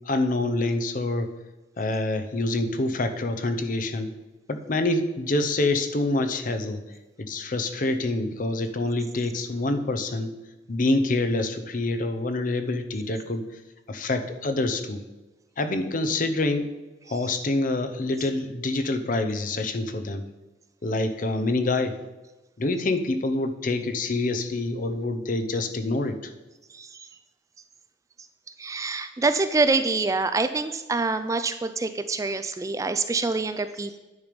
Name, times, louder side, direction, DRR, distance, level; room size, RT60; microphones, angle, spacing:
voice 1, 0.1-1.3 1.8-4.1 4.5-6.8 7.2-10.3 10.7-13.4 13.9-15.0 15.6-16.7 17.1-20.2 20.8-22.0 22.6-26.3, left 2 dB, 45° left, 8 dB, 0.7 m, -26 dB
voice 2, 26.7-27.1 28.6-34.0, right 3 dB, 20° right, 10 dB, 0.3 m, -26 dB
9.8 x 5.2 x 5.1 m, 1.1 s
head